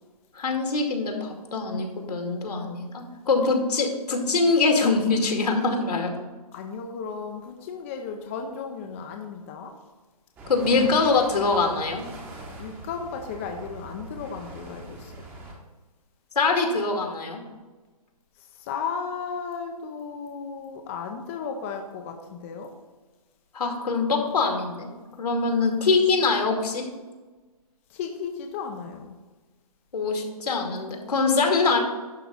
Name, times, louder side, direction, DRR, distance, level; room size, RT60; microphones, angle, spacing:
voice 1, 0.3-6.1 10.5-12.0 16.4-17.4 23.5-24.9 25.2-26.9 29.9-31.8, left 4 dB, 80° left, 2 dB, 2.4 m, -23 dB
voice 2, 6.5-9.7 12.6-15.1 18.7-22.7 27.9-29.2, left 6 dB, 20° left, 3 dB, 0.6 m, -34 dB
sound 1, 10.4-15.5, right 2 dB, 10° right, 1.0 m, -42 dB
11.0 x 3.8 x 6.7 m, 1.3 s
hypercardioid pair, 165°, 20 cm